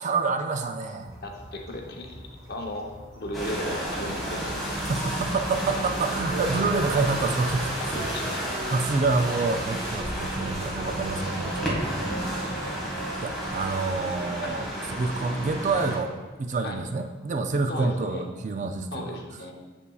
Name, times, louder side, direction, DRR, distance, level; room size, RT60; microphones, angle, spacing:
voice 1, 0.0-1.1 4.9-8.1 8.7-11.8 13.2-14.7 14.9-16.1 16.4-19.2, right 3 dB, 40° right, 7 dB, 0.4 m, -27 dB
sound 1, 1.0-12.9, equal, 20° right, 1.0 m, -46 dB
voice 2, 1.2-2.9 3.2-4.8 8.0-8.7 14.4-14.6 16.6-16.8 17.7-18.2 18.9-19.5, left 1 dB, 55° left, 1 dB, 0.8 m, -36 dB
sound 2, 3.3-16.0, right 1 dB, ahead, 1.6 m, -31 dB
7.1 x 6.8 x 2.3 m, 1.3 s
head